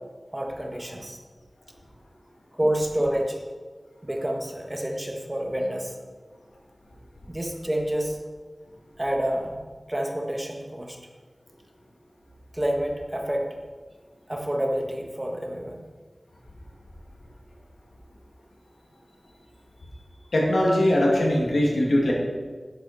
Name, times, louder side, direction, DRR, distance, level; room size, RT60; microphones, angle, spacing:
voice 1, 0.3-1.2 2.6-3.4 4.0-5.9 7.3-8.2 9.0-9.6 9.9-11.0 12.5-13.5 14.3-15.8, right 1 dB, 25° right, 1 dB, 1.7 m, -28 dB
voice 2, 20.3-22.1, left 1 dB, 90° left, -2 dB, 2.3 m, -21 dB
11.0 x 8.4 x 4.3 m, 1.5 s
wide cardioid pair, 50°, 0 cm